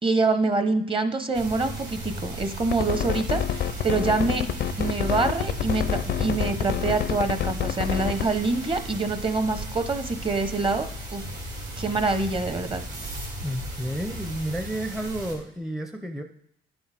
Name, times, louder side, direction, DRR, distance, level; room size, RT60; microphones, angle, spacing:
voice 1, 0.0-3.4 3.8-4.5 4.8-11.2 11.8-12.8, right 3 dB, 25° right, 9 dB, 0.9 m, -25 dB
sound 1, 1.3-15.3, right 1 dB, 65° right, 3.2 m, -36 dB
sound 2, 2.7-8.3, left 10 dB, 60° left, 0.5 m, -27 dB
voice 2, 13.4-16.2, right 1 dB, ahead, 5 dB, 0.6 m, -31 dB
11.0 x 7.2 x 3.4 m, 0.73 s
cardioid pair, 90°, 20 cm